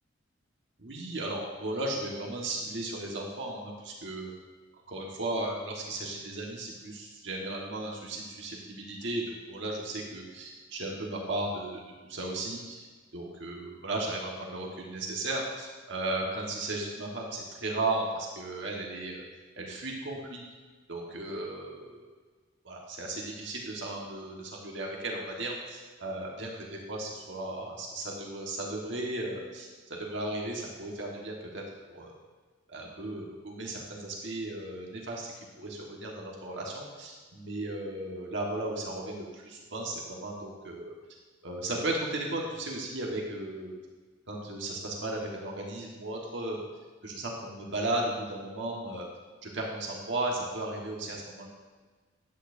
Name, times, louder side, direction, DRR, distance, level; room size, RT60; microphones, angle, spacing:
voice 1, 0.8-4.3 4.9-12.9 13.1-19.2 19.6-20.4 20.9-22.1 22.6-31.6 31.9-32.1 32.7-35.3 35.6-40.9 41.4-43.7 44.3-46.6 47.0-49.1 49.4-51.5, right 2 dB, 70° right, -2 dB, 1.5 m, -35 dB
11.0 x 8.7 x 2.6 m, 1.4 s
head